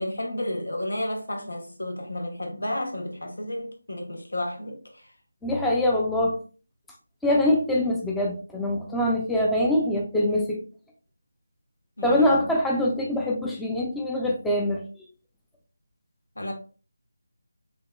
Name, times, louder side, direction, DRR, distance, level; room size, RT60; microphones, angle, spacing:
voice 1, 0.0-5.1 12.0-12.5 16.3-16.5, left 1 dB, 80° left, 1.4 m, -32 dB
voice 2, 5.4-6.4 7.2-10.6 12.0-14.8, left 1 dB, 5° left, 0.5 m, -24 dB
6.9 x 2.8 x 2.3 m
figure-of-eight pair, 165°, 0 cm